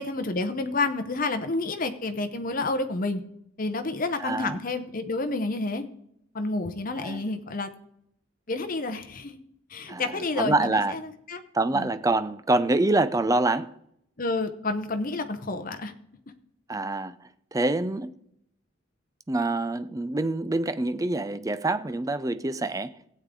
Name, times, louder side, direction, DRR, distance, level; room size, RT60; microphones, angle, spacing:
voice 1, 0.0-3.2 3.6-5.8 6.3-7.7 8.5-9.4 9.7-11.4 11.7-11.9 14.2-15.9, left 3 dB, 45° left, 0.8 m, -29 dB
voice 2, 4.2-4.6 7.0-7.2 9.9-10.9 11.5-13.7 16.7-17.1 17.5-18.2 19.3-22.9, right 2 dB, 15° right, 0.5 m, -26 dB
16.0 x 8.5 x 3.7 m
head